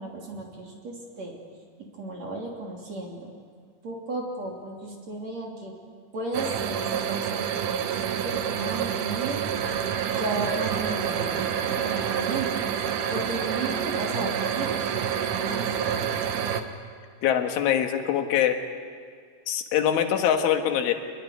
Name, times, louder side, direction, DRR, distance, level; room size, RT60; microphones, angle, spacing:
voice 1, 0.0-1.3 2.0-3.3 3.8-5.7 6.1-7.8 8.2-9.4 10.1-12.5 12.8-14.7 15.3-15.6, right 2 dB, 40° right, 0 dB, 3.7 m, -34 dB
sound 1, 6.3-16.6, right 8 dB, 70° right, 1.9 m, -28 dB
voice 2, 17.2-18.6 19.5-20.9, left 9 dB, 85° left, 5 dB, 4.0 m, -23 dB
26.5 x 21.0 x 9.5 m, 2.1 s
omnidirectional pair, 5.4 m